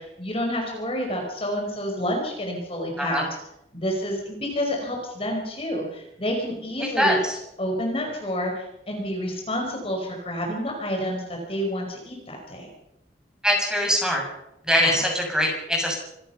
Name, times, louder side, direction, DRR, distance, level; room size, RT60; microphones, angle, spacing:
voice 1, 0.0-3.2 3.7-7.2 7.6-12.7 14.8-15.0, equal, 35° left, 1 dB, 4.9 m, -29 dB
voice 2, 13.4-14.2 14.7-15.9, equal, 5° right, 0 dB, 7.1 m, -22 dB
26.5 x 17.0 x 5.7 m, 0.83 s
head